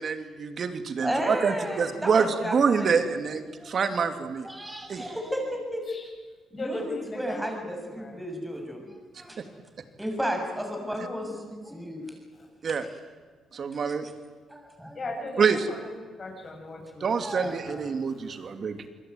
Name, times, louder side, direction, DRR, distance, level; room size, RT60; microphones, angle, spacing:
voice 1, 0.0-4.5 4.9-5.0 9.4-9.5 12.6-12.9 13.5-14.1 15.4-15.7 17.0-18.9, right 6 dB, 50° right, 8 dB, 2.8 m, -26 dB
voice 2, 1.0-2.9 3.6-4.0 4.4-5.9 6.5-8.9 9.1-9.4 10.0-12.2 12.8-13.0 13.8-13.9 14.5-15.0 16.8-17.6, equal, 5° right, 3 dB, 6.9 m, -33 dB
voice 3, 6.5-7.4 8.0-8.1 14.9-15.9 16.2-17.1 17.4-18.5 18.8-18.9, left 2 dB, 40° left, 1 dB, 7.3 m, -39 dB
27.0 x 21.5 x 9.4 m, 1.4 s
cardioid pair, 90°, 0 cm